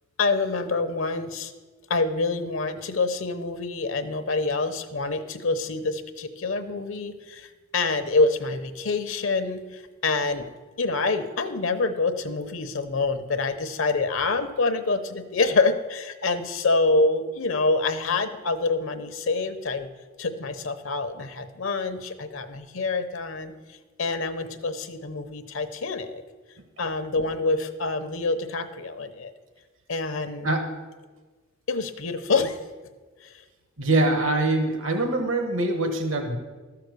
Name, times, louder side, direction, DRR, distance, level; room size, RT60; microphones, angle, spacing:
voice 1, 0.2-1.5 1.9-7.5 7.7-10.5 10.8-19.9 20.2-23.5 24.0-26.2 26.8-29.3 29.9-30.5 31.7-32.6, left 3 dB, 75° left, 9 dB, 0.9 m, -26 dB
voice 2, 33.8-36.4, right 2 dB, 75° right, 4 dB, 1.4 m, -23 dB
13.0 x 5.8 x 6.7 m, 1.4 s
head